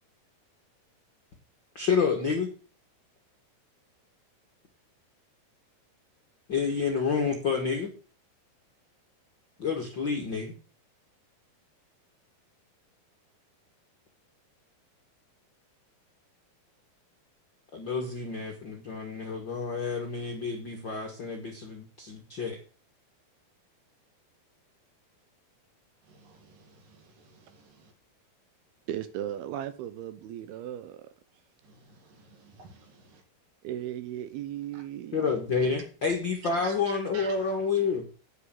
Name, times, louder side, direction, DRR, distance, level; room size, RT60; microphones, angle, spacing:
voice 1, 1.7-2.5 6.5-7.9 9.6-10.5 17.7-22.6 35.1-38.0, left 5 dB, 55° left, 1.3 m, -29 dB
voice 2, 26.1-27.0 27.8-27.9 31.6-33.2 34.7-34.8 36.6-36.8 37.1-37.5, right 4 dB, 60° right, 3.4 m, -49 dB
voice 3, 28.9-31.1 33.6-35.7, right 11 dB, 80° right, 2.5 m, -37 dB
9.3 x 6.7 x 7.6 m
omnidirectional pair, 4.6 m